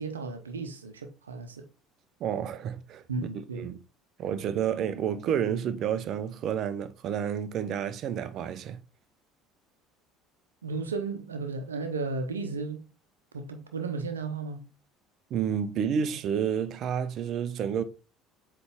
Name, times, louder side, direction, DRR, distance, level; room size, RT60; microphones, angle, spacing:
voice 1, 0.0-1.7 3.1-3.7 10.6-12.8 13.3-14.6, right 4 dB, 90° right, 0.8 m, -34 dB
voice 2, 2.2-3.0 3.5-3.8 4.2-8.8 15.3-17.8, right 8 dB, 50° right, 0.7 m, -30 dB
7.9 x 3.3 x 3.6 m
hypercardioid pair, 65°, 0 cm